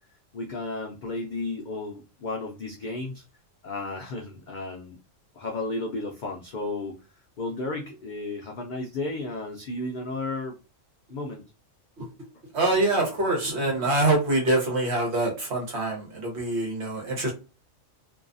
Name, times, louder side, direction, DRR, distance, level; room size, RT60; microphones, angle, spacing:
voice 1, 0.3-3.2 3.6-5.0 5.4-7.0 7.4-10.6 11.1-11.4, left 2 dB, 85° left, 1 dB, 0.4 m, -33 dB
voice 2, 12.5-17.3, right 2 dB, 55° right, 0 dB, 1.2 m, -25 dB
2.6 x 2.3 x 2.5 m, 0.31 s
omnidirectional pair, 1.4 m